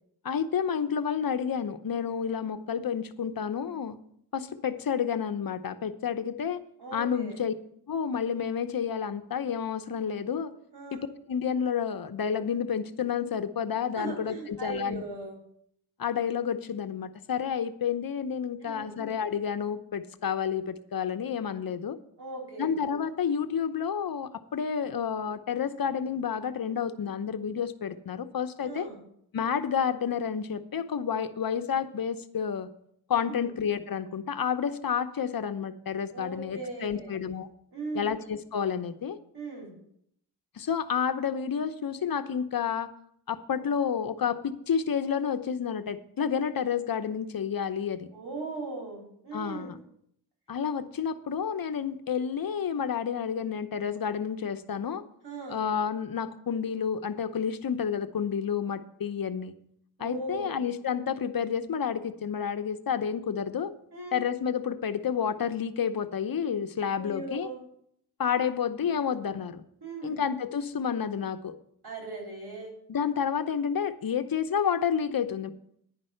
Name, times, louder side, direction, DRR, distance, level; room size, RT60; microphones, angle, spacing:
voice 1, 0.2-4.0 4.3-6.6 6.9-7.5 7.9-10.5 10.9-15.0 16.0-22.0 22.6-28.9 29.3-32.7 33.1-37.5 37.9-39.2 40.6-42.9 43.3-48.1 49.3-49.8 50.5-55.0 55.5-59.5 60.0-63.7 64.1-67.5 68.2-69.6 70.0-71.6 72.9-75.5, left 7 dB, 60° left, 10 dB, 0.8 m, -30 dB
voice 2, 6.8-7.4 10.7-11.0 13.9-15.4 18.6-19.0 22.2-22.7 28.6-29.0 33.3-33.5 36.1-37.1 37.7-38.1 39.3-39.7 48.1-49.7 55.2-55.6 60.0-60.6 63.9-64.2 67.0-67.6 69.8-70.2 71.8-72.7, right 3 dB, 80° right, -1 dB, 4.1 m, -38 dB
10.5 x 5.4 x 7.7 m, 0.70 s
cardioid pair, 65°, 40 cm